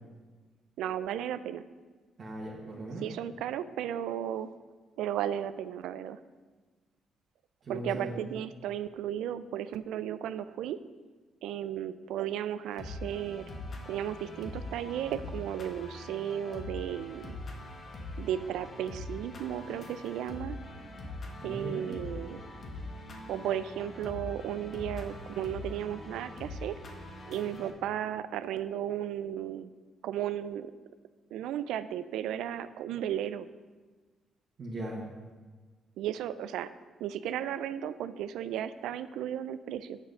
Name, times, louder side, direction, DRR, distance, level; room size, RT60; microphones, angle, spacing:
voice 1, 0.8-1.6 3.0-4.5 5.0-6.2 7.7-10.8 11.4-13.5 13.9-17.4 18.2-20.6 21.4-22.4 23.3-26.8 27.3-29.7 30.0-30.7 31.3-33.5 36.0-36.7 37.0-40.0, right 10 dB, 85° right, 13 dB, 0.3 m, -34 dB
voice 2, 2.2-3.0 7.6-8.3 21.4-22.0 34.6-35.1, right 1 dB, 50° right, -4 dB, 1.5 m, -38 dB
sound 1, 12.8-27.7, left 2 dB, 45° left, 1.4 m, -43 dB
7.3 x 6.2 x 5.5 m, 1.4 s
cardioid pair, 90°, 0 cm